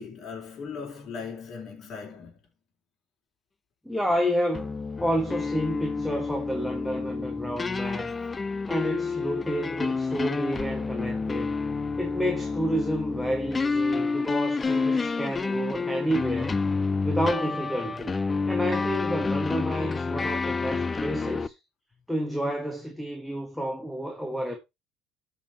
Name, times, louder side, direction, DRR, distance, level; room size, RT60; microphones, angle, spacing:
voice 1, 0.0-2.4, left 5 dB, 50° left, 3.9 m, -38 dB
voice 2, 3.9-8.1 8.7-11.5 12.0-16.6 17.0-18.1 18.5-21.5 22.1-24.6, equal, ahead, 1.7 m, -30 dB
sound 1, 4.5-21.5, left 4 dB, 25° left, 0.5 m, -29 dB
13.5 x 5.7 x 3.0 m
hypercardioid pair, 75°, 0 cm